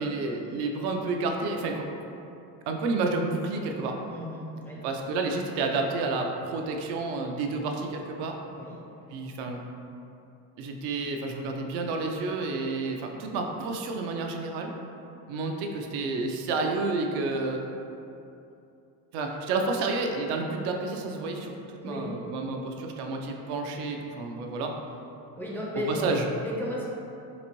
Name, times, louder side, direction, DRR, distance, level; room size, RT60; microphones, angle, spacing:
voice 1, 0.0-1.9 2.7-4.0 4.8-8.4 9.1-9.6 10.6-14.7 15.3-17.6 19.1-24.7 25.9-26.2, right 3 dB, 70° right, 2 dB, 0.5 m, -30 dB
voice 2, 4.1-4.8 8.5-8.8 21.8-22.2 25.4-26.9, left 1 dB, 5° left, -6 dB, 0.4 m, -34 dB
4.1 x 2.6 x 2.9 m, 2.7 s
cardioid pair, 115°, 41 cm